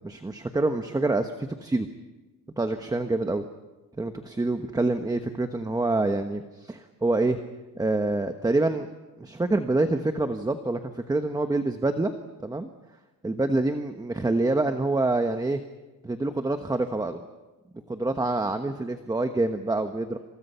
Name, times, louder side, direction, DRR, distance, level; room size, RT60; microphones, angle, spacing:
voice 1, 0.0-1.9 2.6-3.4 4.0-7.4 7.7-8.9 9.2-12.1 12.4-12.7 13.2-15.6 16.0-17.2 17.9-20.2, right 2 dB, 10° right, 7 dB, 1.2 m, -26 dB
28.5 x 27.5 x 5.7 m, 1.1 s
cardioid pair, 135°, 35 cm